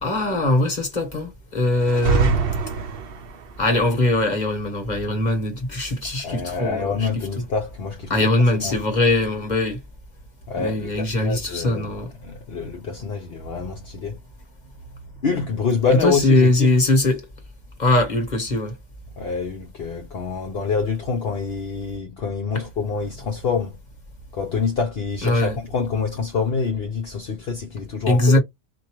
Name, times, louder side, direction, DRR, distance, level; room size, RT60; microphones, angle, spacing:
voice 1, 0.0-2.4 3.6-7.1 8.1-9.8 10.6-12.1 16.0-17.2 17.8-18.7 25.2-25.6 28.1-28.4, left 2 dB, 40° left, 1.4 m, -21 dB
sound 1, 1.8-3.5, right 6 dB, 60° right, 0.9 m, -23 dB
voice 2, 6.2-8.1 8.6-8.8 10.5-11.9 12.2-14.2 15.2-16.8 19.2-23.8 24.3-28.4, left 5 dB, 60° left, 1.0 m, -26 dB
4.6 x 2.6 x 3.0 m
omnidirectional pair, 1.2 m